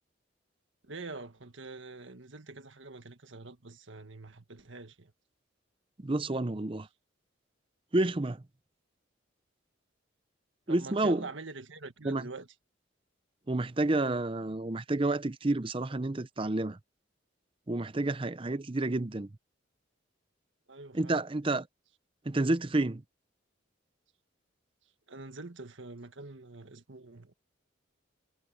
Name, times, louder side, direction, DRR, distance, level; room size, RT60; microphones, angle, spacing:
voice 1, 0.8-5.1 10.7-12.5 20.7-21.2 25.1-27.4, right 3 dB, 70° right, 1.6 m, -45 dB
voice 2, 6.0-6.9 7.9-8.4 10.7-11.3 12.0-12.2 13.5-16.8 17.7-19.3 20.9-21.7 22.3-23.0, right 2 dB, 25° right, 0.6 m, -29 dB
head